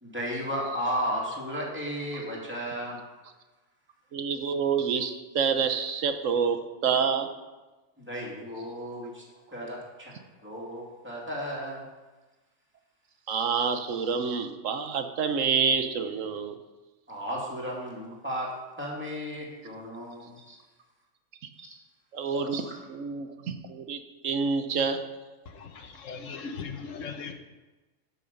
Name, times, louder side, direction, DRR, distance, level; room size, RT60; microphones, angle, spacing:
voice 1, 0.0-3.0 8.0-9.2 9.5-10.1 10.4-11.8 17.1-18.5 18.8-20.6 21.6-21.7 22.5-22.7, equal, 10° right, 2.5 m, -34 dB
voice 2, 4.1-7.3 13.3-16.5 22.1-22.6 22.9-25.0, right 6 dB, 80° right, 1.3 m, -27 dB
voice 3, 25.4-27.3, left 5 dB, 80° left, 1.3 m, -39 dB
12.0 x 6.4 x 5.3 m
omnidirectional pair, 1.3 m